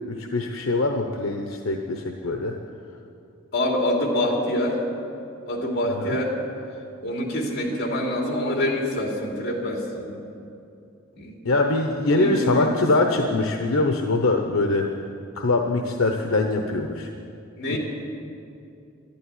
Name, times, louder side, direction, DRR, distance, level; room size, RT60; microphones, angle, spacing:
voice 1, 0.1-2.5 6.0-6.1 11.4-14.9 15.4-17.1 17.7-17.8, left 2 dB, 85° left, 4 dB, 0.9 m, -23 dB
voice 2, 3.5-4.8 5.5-6.4 7.0-10.2 11.1-11.4 12.1-12.8 17.6-17.8, left 1 dB, 55° left, 0 dB, 3.0 m, -26 dB
12.0 x 11.5 x 9.8 m, 2.6 s
head